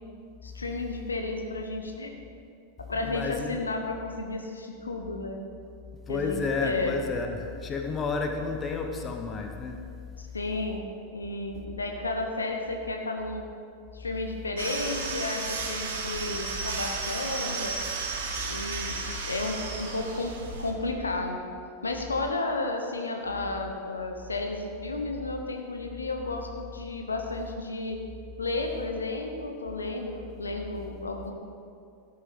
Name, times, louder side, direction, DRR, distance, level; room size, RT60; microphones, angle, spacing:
voice 1, 0.4-2.1 2.8-5.4 6.1-6.9 10.2-10.9 11.1-13.5 13.9-17.8 18.4-21.4 21.8-28.0 28.4-31.3, left 2 dB, 75° left, 3 dB, 1.1 m, -32 dB
voice 2, 3.0-3.6 6.1-10.0, left 4 dB, 20° left, 3 dB, 1.1 m, -31 dB
sound 1, 14.6-20.7, right 4 dB, 60° right, 1.6 m, -33 dB
14.0 x 7.0 x 5.2 m, 2.4 s
figure-of-eight pair, 90°, 0 cm